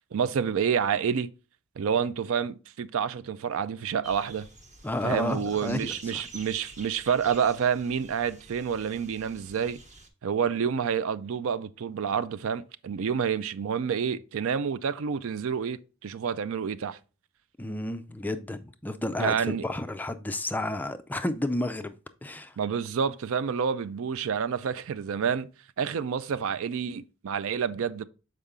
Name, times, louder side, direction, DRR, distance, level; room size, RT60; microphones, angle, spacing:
voice 1, 0.1-1.3 1.8-4.5 5.0-9.8 10.2-17.0 19.2-19.6 22.6-25.5 25.8-28.0, right 7 dB, 60° right, 0.4 m, -28 dB
sound 1, 4.0-10.1, right 2 dB, 35° right, 1.0 m, -48 dB
voice 2, 4.8-6.3 17.6-21.9 22.2-22.6, left 1 dB, 10° left, 0.3 m, -31 dB
6.7 x 4.7 x 3.6 m
head